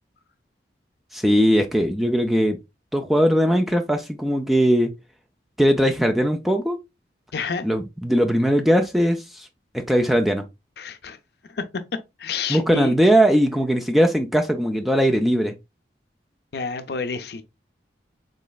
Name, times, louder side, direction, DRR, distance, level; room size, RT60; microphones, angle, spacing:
voice 1, 1.1-2.6 2.9-4.9 5.6-6.8 7.6-9.5 9.7-10.5 12.5-15.5, equal, ahead, 0.3 m, -19 dB
voice 2, 7.3-7.6 10.8-11.2 11.5-12.9 16.5-17.4, left 5 dB, 60° left, 0.5 m, -29 dB
3.8 x 3.1 x 2.3 m
head